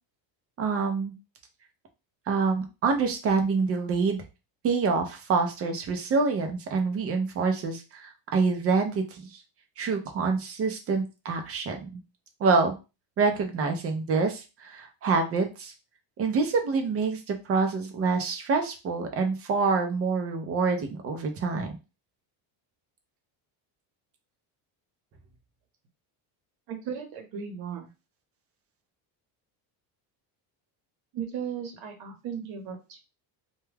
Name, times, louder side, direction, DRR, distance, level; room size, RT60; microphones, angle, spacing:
voice 1, 0.6-1.1 2.3-4.2 4.6-9.4 9.8-12.0 12.4-12.7 13.2-15.7 16.2-21.7, right 4 dB, 30° right, 5 dB, 0.4 m, -26 dB
voice 2, 26.7-27.9 31.1-33.0, right 7 dB, 70° right, 5 dB, 0.9 m, -36 dB
2.2 x 2.2 x 3.2 m, 0.29 s
cardioid pair, 150°, 48 cm